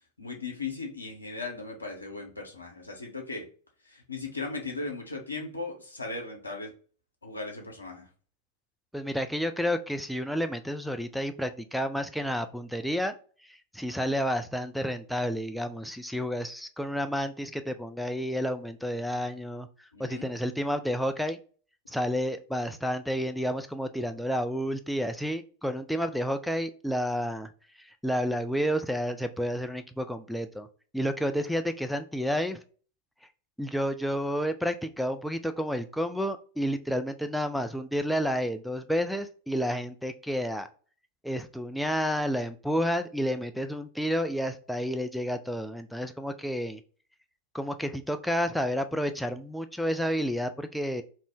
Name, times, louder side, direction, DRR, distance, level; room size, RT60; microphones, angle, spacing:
voice 1, 0.2-3.5 3.9-6.7 7.2-8.1 19.9-20.2, left 3 dB, 80° left, 0.7 m, -37 dB
voice 2, 8.9-13.1 13.4-21.4 21.9-27.5 27.8-30.7 30.9-32.6 33.6-40.7 41.2-46.8 47.5-51.0, equal, ahead, 0.3 m, -30 dB
2.5 x 2.1 x 3.5 m
figure-of-eight pair, 90°, 0 cm